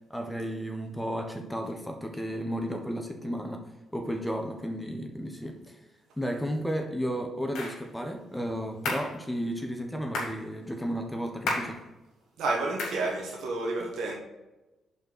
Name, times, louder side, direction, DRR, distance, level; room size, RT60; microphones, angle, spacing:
voice 1, 0.1-3.6 3.9-5.8 6.2-11.8, equal, 10° left, 4 dB, 1.2 m, -33 dB
sound 1, 7.5-7.8 8.9-9.1 10.1-10.4 11.5-11.8 12.8-13.0, left 2 dB, 75° left, 2.1 m, -32 dB
voice 2, 12.4-14.2, right 2 dB, 75° right, -2 dB, 1.3 m, -30 dB
5.3 x 4.5 x 6.2 m, 1.1 s
supercardioid pair, 55°, 0 cm